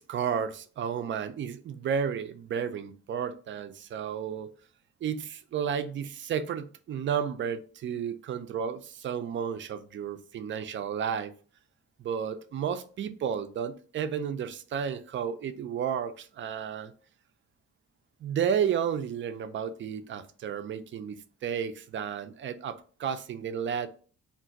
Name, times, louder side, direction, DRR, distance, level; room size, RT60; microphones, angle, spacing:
voice 1, 0.0-4.5 5.0-11.3 12.0-16.9 18.2-23.9, right 7 dB, 40° right, 11 dB, 0.4 m, -32 dB
2.4 x 2.1 x 3.8 m, 0.40 s
cardioid pair, 90°, 30 cm